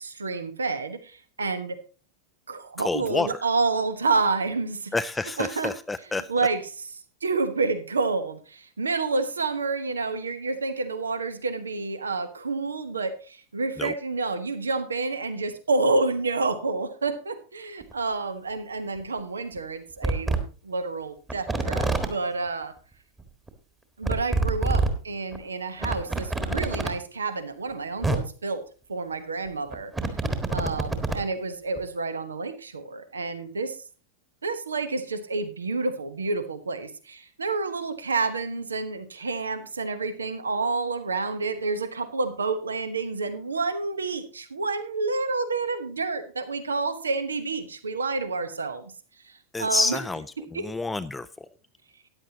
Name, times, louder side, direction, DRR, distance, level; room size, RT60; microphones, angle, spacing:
voice 1, 0.0-1.8 2.5-4.9 5.4-5.7 6.3-6.6 7.2-22.7 24.0-28.6 28.9-29.9 30.5-33.8 34.4-48.9 49.2-50.0 50.5-50.7, right 3 dB, 75° right, 12 dB, 1.0 m, -29 dB
voice 2, 2.8-3.4 4.9-6.3 13.8-13.9 49.5-50.3 50.5-51.5, left 3 dB, 10° left, 12 dB, 0.4 m, -28 dB
sound 1, 17.8-17.9 19.0-19.1 19.6-19.7 20.0-20.4 21.3-22.1 23.2-23.3 23.5-23.6 24.0-24.9 25.3-25.4 25.8-26.9 27.7-27.8 28.0-28.2 29.5-31.2 31.8-31.9, right 2 dB, 15° right, 1.5 m, -26 dB
14.5 x 9.9 x 2.8 m, 0.38 s
figure-of-eight pair, 90°, 0 cm